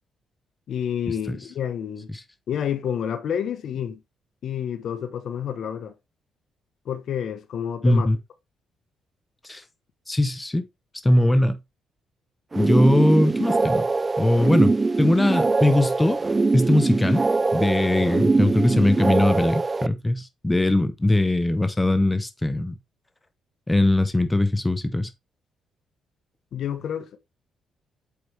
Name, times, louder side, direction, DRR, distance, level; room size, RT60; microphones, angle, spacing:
voice 1, 0.7-2.1 2.5-4.0 4.4-5.9 6.8-8.1 26.5-27.2, left 9 dB, 65° left, 1.2 m, -29 dB
voice 2, 7.8-8.2 9.4-9.6 10.1-10.7 11.0-11.6 12.5-13.9 14.2-16.2 16.5-17.2 17.5-22.8 23.7-25.1, left 1 dB, 15° left, 0.9 m, -21 dB
sound 1, 12.5-19.9, right 3 dB, 25° right, 0.3 m, -22 dB
8.1 x 4.8 x 3.4 m
cardioid pair, 90°, 0 cm